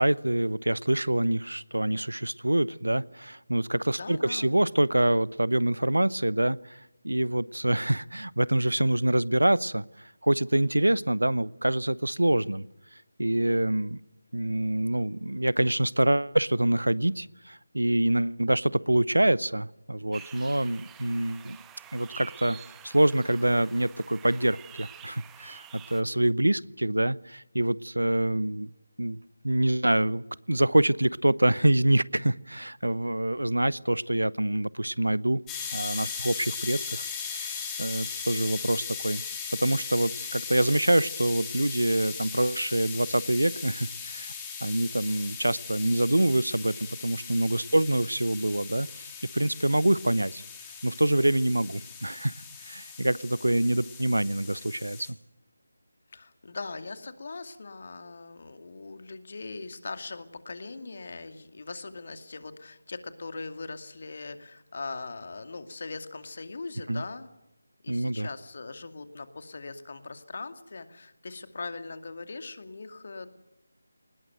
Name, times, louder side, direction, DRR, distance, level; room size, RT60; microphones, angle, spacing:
voice 1, 0.0-6.8 7.0-9.8 10.2-12.7 13.2-14.0 14.3-21.6 21.9-22.6 22.8-25.6 25.9-28.7 29.0-29.2 29.4-35.4 35.7-39.2 39.6-44.3 44.6-49.1 49.3-50.4 50.8-52.3 52.6-55.1 66.9-67.0 67.9-68.3, right 1 dB, 80° right, 21 dB, 0.8 m, -26 dB
voice 2, 3.9-4.6 40.2-40.3 56.1-67.3 67.8-73.3, left 3 dB, 45° left, 9 dB, 2.4 m, -40 dB
sound 1, 20.1-26.0, right 9 dB, 10° right, 1.1 m, -48 dB
sound 2, 35.5-55.1, left 6 dB, 10° left, 3.2 m, -38 dB
22.5 x 20.0 x 9.1 m, 0.90 s
figure-of-eight pair, 160°, 0 cm